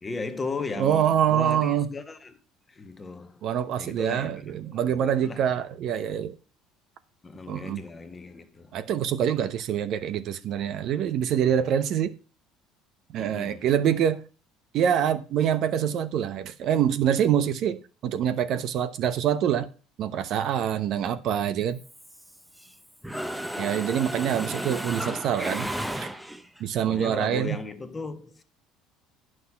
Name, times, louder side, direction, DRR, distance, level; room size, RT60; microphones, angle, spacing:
voice 1, 0.0-2.3 2.7-3.4 3.8-4.3 4.8-5.4 7.2-8.7 13.2-13.6 23.1-23.4 26.9-28.4, left 4 dB, 20° left, 1.3 m, -36 dB
voice 2, 0.7-1.9 3.4-6.3 7.5-7.8 8.7-12.1 13.1-14.2 14.7-19.7 20.0-21.8 23.6-25.7 26.0-26.1 26.6-27.6, right 9 dB, 55° right, 0.9 m, -25 dB
Mechanisms, 21.8-22.7 23.0-26.6, equal, 5° right, 0.9 m, -33 dB
9.5 x 6.3 x 5.8 m
cardioid pair, 115°, 0 cm